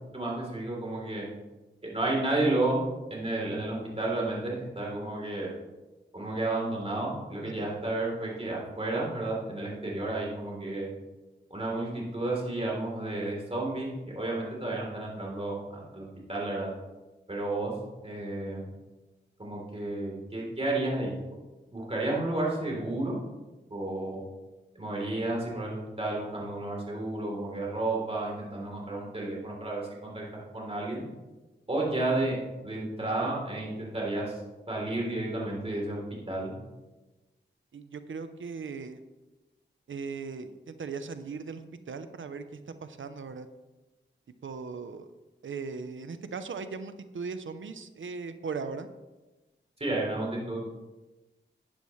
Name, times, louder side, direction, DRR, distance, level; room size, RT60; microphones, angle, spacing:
voice 1, 0.1-1.3 1.8-2.8 3.1-5.5 6.1-10.9 11.5-16.7 17.3-17.7 18.0-18.6 19.4-21.1 21.7-23.2 23.7-24.2 24.7-31.0 31.7-32.4 32.6-34.4 34.7-36.5 49.8-50.7, right 2 dB, 30° right, -3 dB, 3.4 m, -32 dB
voice 2, 37.7-39.0 39.9-43.5 44.4-45.1 45.4-48.9, right 5 dB, 85° right, 10 dB, 0.7 m, -38 dB
12.5 x 8.8 x 3.2 m, 1.1 s
wide cardioid pair, 60°, 20 cm